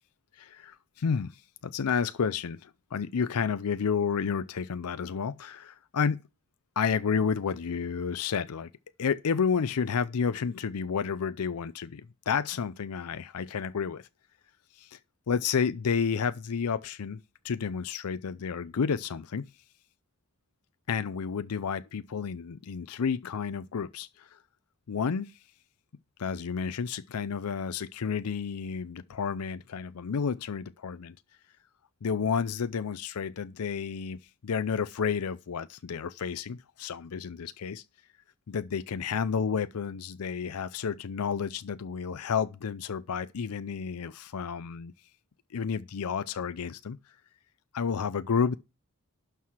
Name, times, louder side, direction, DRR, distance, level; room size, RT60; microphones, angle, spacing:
voice 1, 0.4-1.3 1.6-6.3 6.8-8.7 9.0-14.1 14.8-15.0 15.3-17.2 17.4-19.5 20.9-24.4 24.9-25.3 26.2-31.2 32.0-37.8 38.5-44.9 45.5-47.0 47.7-48.6, left 6 dB, 80° left, 0.5 m, -31 dB
11.5 x 4.8 x 5.6 m
head